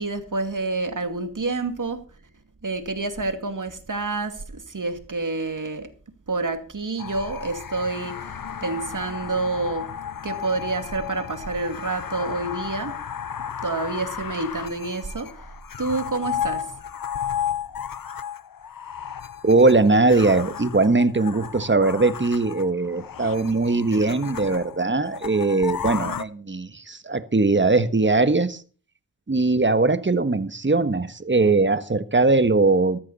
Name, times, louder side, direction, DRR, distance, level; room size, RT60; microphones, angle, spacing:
voice 1, 0.0-2.0 2.6-5.9 6.3-9.9 10.2-13.0 13.6-15.4 15.8-16.7, right 3 dB, 50° right, 8 dB, 2.4 m, -28 dB
sound 1, 7.0-26.2, left 8 dB, 60° left, 0.8 m, -34 dB
voice 2, 19.4-28.6 29.3-33.0, right 3 dB, 30° right, 12 dB, 1.4 m, -20 dB
14.0 x 13.5 x 4.2 m, 0.39 s
cardioid pair, 50°, 39 cm